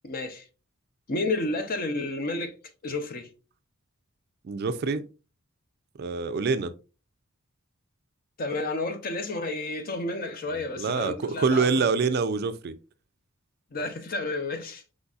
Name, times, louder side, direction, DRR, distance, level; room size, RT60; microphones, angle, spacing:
voice 1, 0.0-0.4 1.1-2.5 2.8-3.3 8.4-11.7 13.7-14.8, left 2 dB, 40° left, 0.6 m, -31 dB
voice 2, 4.4-5.0 6.0-6.7 10.8-12.7, right 4 dB, 45° right, 0.4 m, -25 dB
4.9 x 3.9 x 2.3 m
head